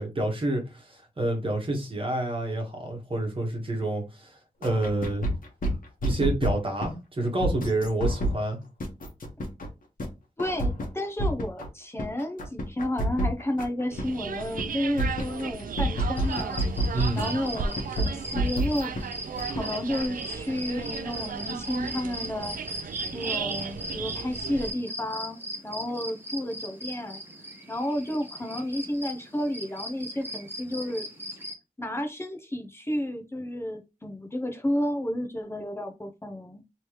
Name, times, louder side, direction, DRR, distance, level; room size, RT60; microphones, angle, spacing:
voice 1, 0.0-5.3 6.0-8.6 16.9-17.4, right 2 dB, 35° right, 1.2 m, -28 dB
sound 1, 4.6-6.9 7.4-8.4 8.8-9.7 10.0-10.1 10.4-11.7 12.0-14.1 14.4-14.7 15.0-17.3 17.6-19.0 19.4-19.6, right 1 dB, 70° left, 1.1 m, -28 dB
voice 2, 10.4-19.0 19.5-22.6 23.1-25.4 25.6-27.2 27.7-31.1 31.8-36.6, left 1 dB, 15° left, 0.6 m, -31 dB
sound 2, 13.9-24.7, right 6 dB, 70° right, 0.4 m, -35 dB
sound 3, 16.2-31.5, equal, 15° right, 1.0 m, -39 dB
3.3 x 3.0 x 2.9 m
wide cardioid pair, 110°, 15 cm